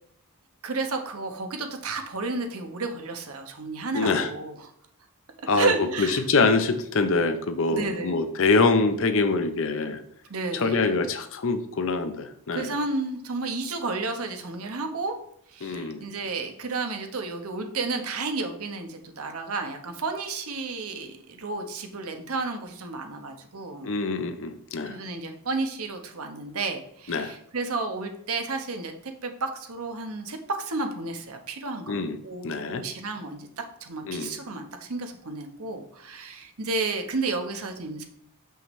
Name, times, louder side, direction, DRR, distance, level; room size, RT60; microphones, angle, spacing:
voice 1, 0.6-4.7 5.6-6.2 7.7-8.2 10.3-10.9 12.5-15.2 15.5-23.9 24.9-38.0, right 3 dB, 70° right, 5 dB, 1.0 m, -32 dB
voice 2, 3.9-4.3 5.5-10.0 10.5-12.7 15.6-16.1 23.8-25.0 27.1-27.3 31.9-32.2 32.4-32.8 34.0-34.3, left 3 dB, 60° left, 9 dB, 0.7 m, -25 dB
7.1 x 5.6 x 3.2 m, 0.70 s
head